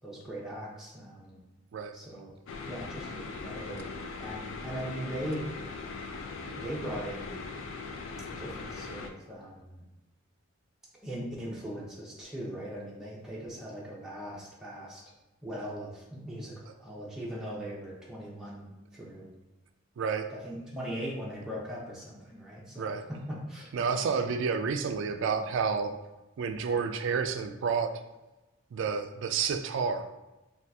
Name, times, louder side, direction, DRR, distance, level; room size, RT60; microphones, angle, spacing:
voice 1, 0.0-1.4 1.9-2.3 2.7-3.9 4.2-5.5 6.6-7.4 8.3-9.7 11.0-15.0 15.4-19.3 20.3-23.7, equal, 5° right, -6 dB, 0.5 m, -39 dB
sound 1, 2.5-9.1, left 4 dB, 70° left, 0.3 m, -40 dB
voice 2, 20.0-20.3 22.8-23.0 23.7-25.9 26.4-28.0 28.7-30.0, right 5 dB, 65° right, 8 dB, 0.3 m, -30 dB
2.7 x 2.3 x 3.4 m, 1.0 s
head